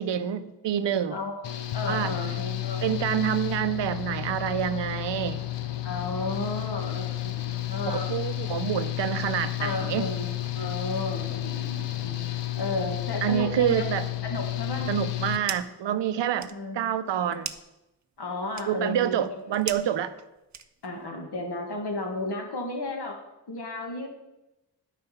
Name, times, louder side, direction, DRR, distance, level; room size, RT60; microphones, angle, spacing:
voice 1, 0.0-1.2 1.9-2.1 2.8-5.4 7.8-10.1 13.2-14.1 14.9-17.5 18.7-20.1, right 10 dB, 90° right, 12 dB, 0.6 m, -27 dB
voice 2, 1.1-2.8 5.8-8.1 9.6-12.2 12.6-13.9 14.2-14.9 16.2-16.9 18.2-19.6 20.8-23.2 23.5-24.1, left 2 dB, 65° left, 2 dB, 1.9 m, -33 dB
Engine / Mechanical fan, 1.4-15.4, left 14 dB, 85° left, 0.6 m, -32 dB
sound 1, 15.0-15.8 16.2-21.1, right 6 dB, 40° right, 0.7 m, -41 dB
9.0 x 5.1 x 5.7 m, 0.96 s
cardioid pair, 45°, 42 cm